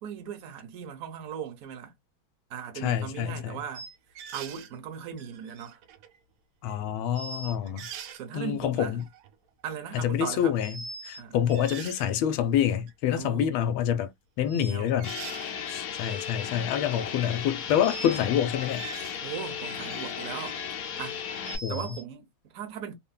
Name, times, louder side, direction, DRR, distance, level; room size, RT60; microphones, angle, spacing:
voice 1, 0.0-1.9 2.5-3.9 4.3-5.8 7.9-9.0 9.6-10.6 11.2-11.4 13.1-13.5 14.6-15.0 19.2-20.6 21.0-21.2 21.7-23.0, right 8 dB, 60° right, 1.0 m, -38 dB
voice 2, 2.8-3.6 6.6-7.9 8.3-8.9 9.9-10.7 11.0-14.1 14.4-15.1 15.7-18.9 21.6-21.8, left 9 dB, 85° left, 1.4 m, -27 dB
sound 1, 3.7-4.7 5.2-6.2 6.7-6.8 7.2-8.2 9.0-9.3 10.6-11.2 11.5-12.1 12.9-13.0 14.5-15.5 16.5-16.8 17.8-18.3 18.6-19.2 19.6-20.5 21.0-22.0, right 4 dB, 85° right, 1.4 m, -42 dB
sound 2, 15.0-21.6, left 7 dB, 65° left, 0.9 m, -35 dB
3.4 x 2.1 x 2.2 m
omnidirectional pair, 2.2 m